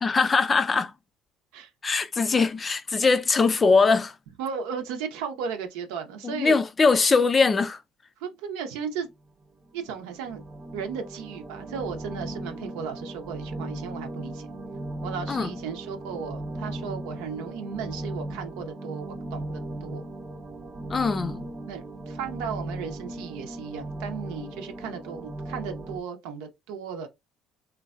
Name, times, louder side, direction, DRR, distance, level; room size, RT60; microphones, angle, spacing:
voice 1, 0.0-0.9 1.8-4.1 6.2-7.8 15.3-15.5 20.9-21.5, left 4 dB, 30° left, 0.4 m, -22 dB
voice 2, 4.4-6.6 8.2-9.1 9.7-10.4 10.7-14.5 15.0-20.1 21.7-27.1, right 6 dB, 75° right, 0.7 m, -35 dB
sound 1, 9.6-26.0, right 1 dB, 30° right, 0.7 m, -37 dB
3.2 x 2.2 x 2.4 m
hypercardioid pair, 65°, 0 cm